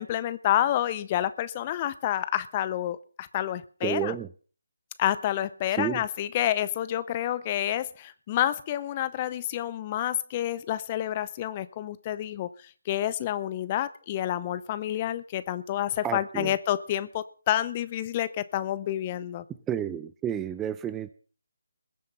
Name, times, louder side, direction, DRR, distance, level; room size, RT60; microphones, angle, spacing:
voice 1, 0.0-4.2 5.0-12.5 12.9-19.4, left 12 dB, 25° left, 0.7 m, -29 dB
voice 2, 3.8-4.3 5.7-6.0 16.0-16.5 19.7-21.1, right 10 dB, 10° right, 0.6 m, -30 dB
21.0 x 7.6 x 5.6 m
figure-of-eight pair, 155°, 0 cm